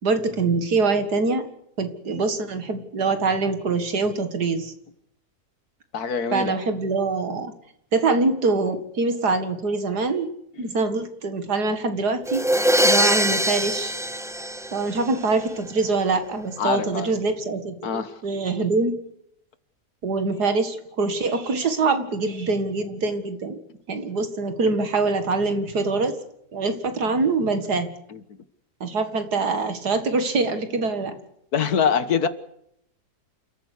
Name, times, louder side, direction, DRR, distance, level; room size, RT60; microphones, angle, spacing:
voice 1, 0.0-1.4 1.8-4.7 6.3-7.5 7.9-10.3 10.6-12.4 12.8-13.9 14.7-19.0 20.0-23.6 23.9-26.2 26.5-27.9 28.8-31.2, right 3 dB, 75° right, 2.5 m, -24 dB
voice 2, 5.9-6.6 10.6-10.7 16.6-17.1 17.8-18.2 28.1-28.2 31.5-32.3, left 6 dB, 70° left, 1.8 m, -24 dB
sound 1, 12.3-15.2, equal, 5° right, 0.5 m, -22 dB
28.5 x 14.0 x 8.3 m
omnidirectional pair, 1.7 m